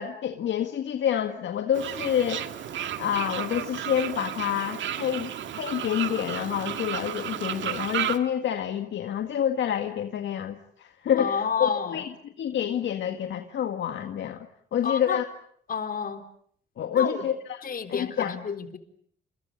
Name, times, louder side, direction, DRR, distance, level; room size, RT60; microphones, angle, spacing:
voice 1, 0.0-2.5 3.0-5.3 5.6-12.1 12.4-14.5 14.7-15.2 16.8-17.6 17.9-18.4, left 9 dB, 70° left, 6 dB, 1.8 m, -28 dB
Fowl, 1.7-8.2, right 10 dB, 70° right, 2.1 m, -33 dB
voice 2, 11.2-12.0 14.8-15.2 15.7-16.2 16.9-17.2 17.6-18.8, left 6 dB, 45° left, 8 dB, 3.8 m, -30 dB
30.0 x 28.5 x 5.5 m, 0.63 s
cardioid pair, 90°, 20 cm